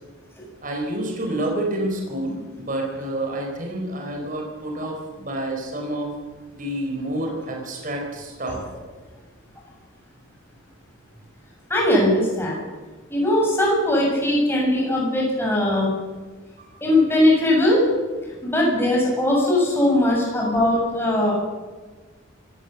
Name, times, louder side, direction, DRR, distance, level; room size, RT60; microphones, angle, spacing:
voice 1, 0.6-6.2 6.5-8.6 16.6-16.8, right 1 dB, 40° right, 0 dB, 4.4 m, -28 dB
voice 2, 11.7-12.6 13.1-15.9 16.8-17.8 18.4-21.3, left 1 dB, 10° left, -3 dB, 7.2 m, -20 dB
24.5 x 17.5 x 7.1 m, 1.4 s
head